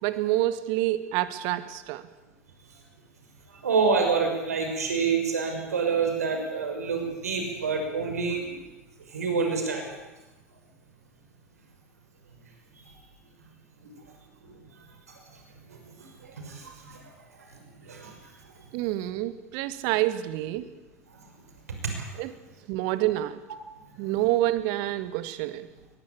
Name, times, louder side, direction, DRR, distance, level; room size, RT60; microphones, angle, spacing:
voice 1, 0.0-2.0 18.7-20.7 22.2-22.3 22.7-23.4 24.0-25.7, right 15 dB, 60° right, 13 dB, 1.9 m, -27 dB
voice 2, 3.6-8.5 9.1-9.9 16.0-16.9 17.8-18.1 22.0-22.1, right 5 dB, 85° right, 3 dB, 5.9 m, -27 dB
23.0 x 20.0 x 8.6 m, 1.1 s
hypercardioid pair, 80°, 8 cm